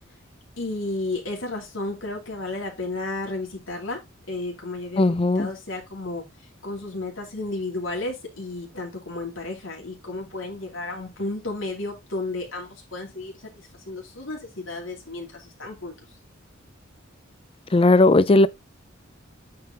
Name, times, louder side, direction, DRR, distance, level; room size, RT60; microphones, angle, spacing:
voice 1, 0.6-4.0 4.3-5.0 5.4-6.2 6.6-13.4 13.9-15.9, left 2 dB, 70° left, 2.8 m, -32 dB
voice 2, 5.0-5.5 17.7-18.5, left 2 dB, 30° left, 0.4 m, -17 dB
8.5 x 4.4 x 3.8 m
head